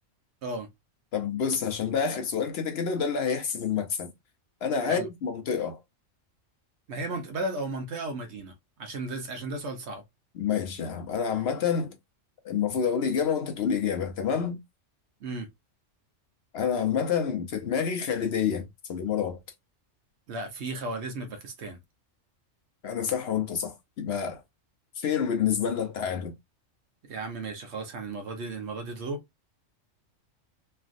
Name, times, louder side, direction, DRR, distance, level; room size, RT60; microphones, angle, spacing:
voice 1, 1.1-4.1 4.6-5.8 10.3-12.0 12.4-14.6 16.5-19.4 22.8-24.4 25.0-26.3, left 7 dB, 65° left, 0.8 m, -28 dB
voice 2, 6.9-8.5 8.8-10.0 15.2-15.5 20.3-21.8 27.0-29.2, right 2 dB, 65° right, 1.0 m, -34 dB
3.2 x 2.4 x 2.4 m
omnidirectional pair, 1.3 m